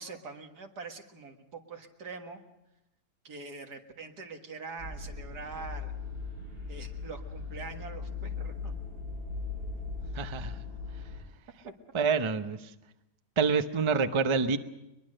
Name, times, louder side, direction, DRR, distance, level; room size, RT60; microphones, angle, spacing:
voice 1, 0.0-2.4 3.2-5.9 6.7-8.7 11.6-11.7 12.2-12.3, right 4 dB, 85° right, 4 dB, 2.3 m, -44 dB
sound 1, 4.8-11.2, left 4 dB, 65° right, 6.7 m, -38 dB
voice 2, 10.1-10.6 11.9-12.7 13.4-14.6, right 5 dB, 30° right, 9 dB, 0.6 m, -27 dB
22.5 x 22.0 x 6.5 m, 0.94 s
omnidirectional pair, 1.7 m